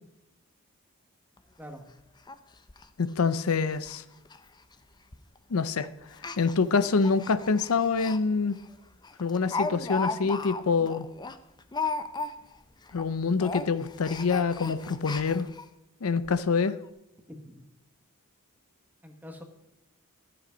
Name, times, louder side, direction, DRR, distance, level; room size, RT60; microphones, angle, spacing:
Speech, 1.4-1.5 1.8-1.9 2.3-2.4 2.7-2.8 3.3-3.4 3.7-4.0 4.2-4.4 5.1-5.4 6.1-8.2 8.6-8.7 9.0-12.6 12.9-13.1 13.4-15.7 16.2-16.3 16.6-16.7, left 4 dB, 20° left, 0.6 m, -35 dB
voice 1, 3.0-4.0 5.5-5.9 6.4-8.5 9.2-11.1 12.9-15.5 16.0-16.8, left 5 dB, 75° left, 14 dB, 0.6 m, -26 dB
voice 2, 17.3-17.6 19.0-19.4, equal, 10° right, 4 dB, 1.4 m, -44 dB
13.5 x 8.0 x 5.1 m, 0.90 s
head